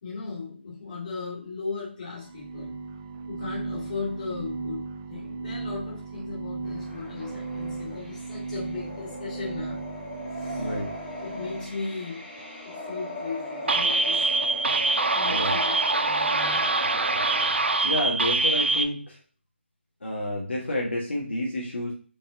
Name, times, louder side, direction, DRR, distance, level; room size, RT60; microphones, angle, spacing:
voice 1, 0.0-2.7 3.3-4.8 5.1-9.8 10.3-10.7 11.2-12.3 12.6-14.3 15.1-16.6, left 4 dB, 35° left, -5 dB, 2.2 m, -37 dB
sound 1, 2.2-11.8, right 4 dB, 15° right, 0.3 m, -36 dB
sound 2, 6.6-17.5, left 1 dB, 5° left, 1.0 m, -38 dB
voice 2, 10.6-10.9 15.3-15.6 17.8-19.2 20.0-21.9, left 1 dB, 65° left, -3 dB, 1.5 m, -29 dB
sound 3, 13.7-18.8, right 3 dB, 65° right, 0.6 m, -24 dB
5.3 x 3.5 x 2.7 m, 0.42 s
figure-of-eight pair, 160°, 7 cm